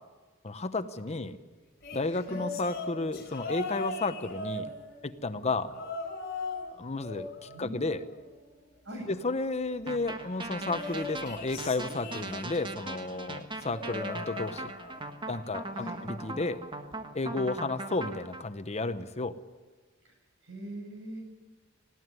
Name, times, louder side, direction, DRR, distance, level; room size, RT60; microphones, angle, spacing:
voice 1, 0.4-1.4 1.9-4.7 5.0-5.7 6.8-8.0 9.1-14.7 15.3-16.6 17.1-19.4, left 3 dB, 35° left, 11 dB, 0.9 m, -32 dB
sound 1, 1.8-5.1 5.6-6.6 6.9-8.5 10.5-12.7 13.6-15.1 15.4-15.8 16.9-17.0, left 3 dB, 55° left, 5.3 m, -39 dB
voice 2, 7.5-8.0 8.9-9.1 15.7-16.0 20.0-20.1 20.4-21.3, equal, 65° right, 3 dB, 6.9 m, -41 dB
sound 2, 9.9-18.4, right 2 dB, 25° right, 1.4 m, -39 dB
20.0 x 16.0 x 9.6 m, 1.3 s
head